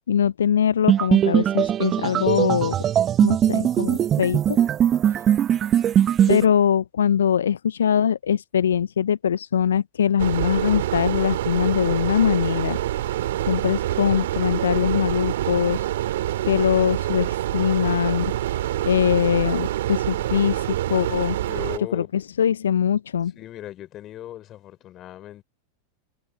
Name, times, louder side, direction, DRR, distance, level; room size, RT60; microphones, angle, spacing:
voice 1, 0.1-2.8 3.2-4.6 6.3-12.8 13.5-15.9 16.4-18.3 18.8-21.4 21.9-23.3, left 8 dB, 75° left, 0.4 m, -22 dB
sound 1, 0.9-6.4, right 10 dB, 30° right, 1.0 m, -20 dB
sound 2, 10.2-21.8, right 13 dB, 65° right, 2.0 m, -26 dB
voice 2, 21.5-22.2 23.4-25.4, left 13 dB, 35° left, 4.2 m, -38 dB
figure-of-eight pair, 90°, 0 cm